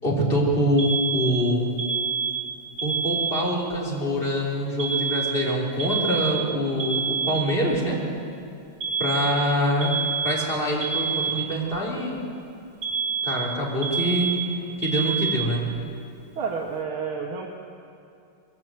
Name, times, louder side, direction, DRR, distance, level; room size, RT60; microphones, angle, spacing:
voice 1, 0.0-1.7 2.8-8.0 9.0-10.0 10.2-12.2 13.2-14.3 14.8-15.7, equal, 25° left, -4 dB, 3.9 m, -25 dB
Alarm, 0.8-3.8 4.8-7.8 8.8-11.8 12.8-15.8, right 6 dB, 50° right, 1.9 m, -28 dB
voice 2, 16.4-17.5, right 5 dB, 85° right, -1 dB, 2.3 m, -30 dB
22.0 x 16.5 x 7.7 m, 2.5 s
omnidirectional pair, 2.3 m